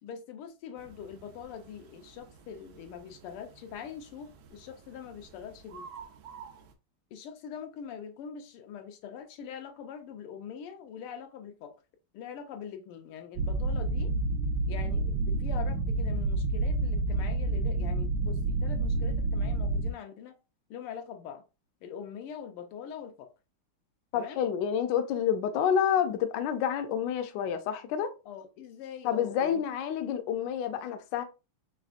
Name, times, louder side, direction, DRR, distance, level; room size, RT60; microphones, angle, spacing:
voice 1, 0.0-5.9 7.1-11.8 12.1-14.1 14.7-20.4 20.7-21.4 21.8-23.3 24.1-24.4 28.3-29.6, left 7 dB, 90° left, 1.7 m, -43 dB
sound 1, 0.8-6.7, right 6 dB, 90° right, 0.8 m, -51 dB
sound 2, 13.4-19.9, right 2 dB, 75° right, 1.3 m, -29 dB
voice 2, 24.1-28.1 29.0-31.2, left 8 dB, 75° left, 1.1 m, -28 dB
4.1 x 3.4 x 2.4 m
omnidirectional pair, 2.4 m